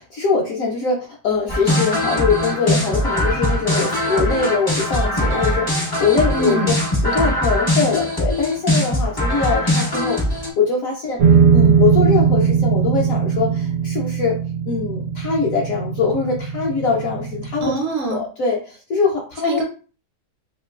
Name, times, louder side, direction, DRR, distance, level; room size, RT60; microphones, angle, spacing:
voice 1, 0.0-11.2 11.5-14.4 14.7-17.7 18.1-19.6, left 5 dB, 65° left, -1 dB, 0.8 m, -22 dB
sound 1, 1.5-10.5, left 1 dB, 35° left, 0.3 m, -21 dB
voice 2, 6.3-6.7 7.2-7.3 17.6-18.2 19.4-19.6, right 3 dB, 65° right, 1 dB, 0.7 m, -23 dB
sound 2, 11.2-17.7, right 6 dB, 85° right, 1.2 m, -19 dB
3.0 x 2.8 x 2.3 m, 0.37 s
omnidirectional pair, 1.9 m